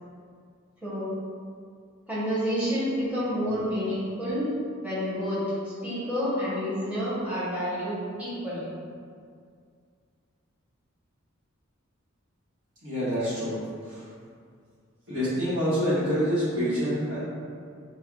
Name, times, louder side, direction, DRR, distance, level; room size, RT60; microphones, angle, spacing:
voice 1, 2.1-4.5 4.8-8.7, equal, 5° right, -11 dB, 0.9 m, -29 dB
voice 2, 12.8-14.0 15.1-17.2, equal, 70° right, -15 dB, 1.1 m, -27 dB
3.4 x 2.1 x 2.3 m, 2.2 s
head